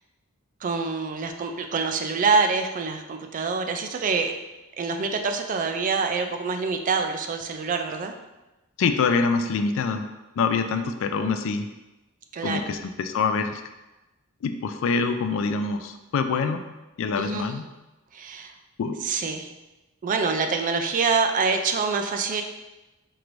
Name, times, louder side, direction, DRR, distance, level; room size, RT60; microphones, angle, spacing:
voice 1, 0.6-4.3 4.8-8.1 12.3-12.8 17.2-17.5 18.1-18.5 19.0-19.5 20.0-22.4, right 4 dB, 40° right, 5 dB, 0.3 m, -26 dB
voice 2, 8.8-10.1 10.4-11.7 12.4-13.6 14.4-16.6 17.0-17.7 18.8-19.0, left 4 dB, 65° left, 8 dB, 0.3 m, -25 dB
4.6 x 2.5 x 3.0 m, 1.0 s
head